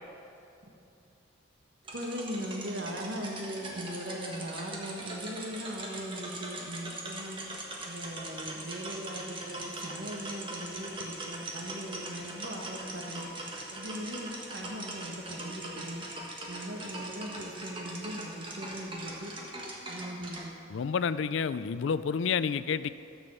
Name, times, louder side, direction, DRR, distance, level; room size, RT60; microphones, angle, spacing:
sound 1, 1.8-20.5, right 2 dB, 25° right, 1.4 m, -41 dB
voice 1, 1.9-7.4 7.8-13.3 13.7-16.0 16.5-19.3 19.9-20.5, equal, 60° right, 2 dB, 1.4 m, -39 dB
voice 2, 20.7-22.9, left 6 dB, 65° left, 14 dB, 0.4 m, -29 dB
13.0 x 7.1 x 6.9 m, 2.7 s
head